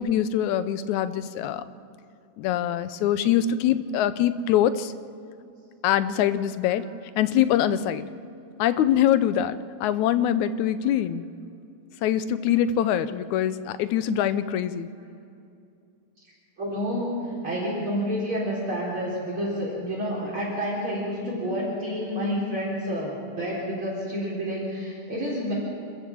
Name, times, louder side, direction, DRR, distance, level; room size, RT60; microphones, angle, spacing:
voice 1, 0.0-1.6 2.4-4.9 5.8-6.9 7.2-8.0 8.6-11.2 12.0-14.9, left 10 dB, 80° left, 13 dB, 2.1 m, -23 dB
voice 2, 16.6-25.5, equal, 40° right, -5 dB, 4.7 m, -29 dB
26.5 x 14.0 x 7.4 m, 2.5 s
omnidirectional pair, 3.4 m